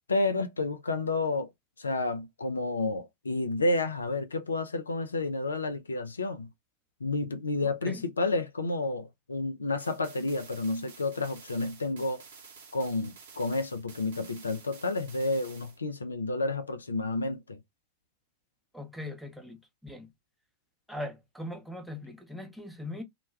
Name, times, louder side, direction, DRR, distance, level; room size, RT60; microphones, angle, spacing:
voice 1, 0.1-1.5 1.8-6.5 7.0-12.2 12.7-17.6, left 2 dB, 75° left, 0.3 m, -30 dB
voice 2, 7.6-8.0 18.7-19.6 19.8-20.1 20.9-23.0, left 1 dB, ahead, 0.6 m, -40 dB
sound 1, 9.8-15.8, right 5 dB, 60° right, 0.8 m, -51 dB
2.1 x 2.1 x 3.0 m
figure-of-eight pair, 90°, 0 cm